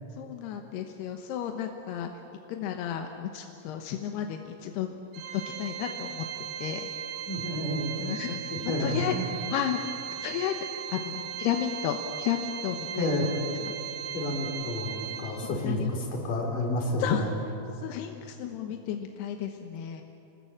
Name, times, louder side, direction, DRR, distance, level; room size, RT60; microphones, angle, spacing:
voice 1, 0.1-2.1 2.5-4.9 5.3-6.3 6.6-6.9 8.0-9.1 9.5-10.5 10.9-13.3 13.6-13.7 15.4-15.9 17.0-17.2 17.8-20.0, left 10 dB, 90° left, 4 dB, 3.1 m, -33 dB
Organ, 5.1-15.8, right 9 dB, 85° right, 3.8 m, -38 dB
voice 2, 7.3-9.2 12.9-13.3 14.1-17.3, left 1 dB, 55° left, 0 dB, 5.5 m, -30 dB
28.5 x 19.5 x 8.6 m, 2.8 s
omnidirectional pair, 4.6 m